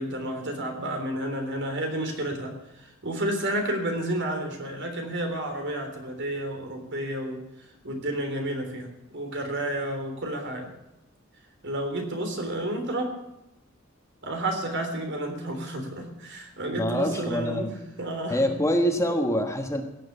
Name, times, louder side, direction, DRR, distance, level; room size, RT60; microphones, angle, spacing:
voice 1, 0.0-7.4 7.8-8.9 9.1-10.7 11.6-13.1 14.2-17.7 18.0-18.6 19.3-19.4, right 1 dB, 60° right, 4 dB, 3.6 m, -31 dB
voice 2, 16.7-17.7 18.3-19.8, equal, 15° left, 5 dB, 1.3 m, -25 dB
17.0 x 7.7 x 8.2 m, 0.90 s
head